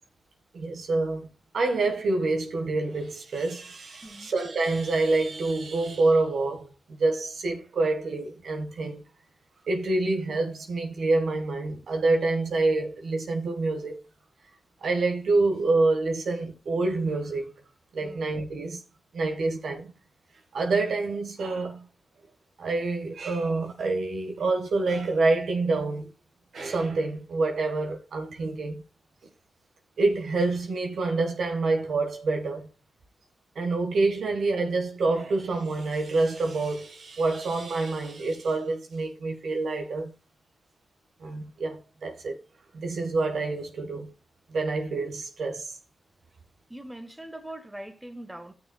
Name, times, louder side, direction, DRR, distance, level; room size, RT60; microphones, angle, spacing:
voice 1, 0.5-1.3 1.5-9.0 9.7-14.0 14.8-17.4 17.9-18.8 19.1-19.9 20.5-21.8 22.6-26.1 26.5-28.8 30.0-32.7 33.6-40.1 41.2-42.4 42.7-44.1 44.5-45.7, right 3 dB, 70° right, 1.6 m, -27 dB
voice 2, 4.0-4.3 18.0-18.2 46.7-48.5, right 1 dB, 15° right, 1.5 m, -41 dB
15.5 x 6.4 x 2.4 m
supercardioid pair, 40°, 0 cm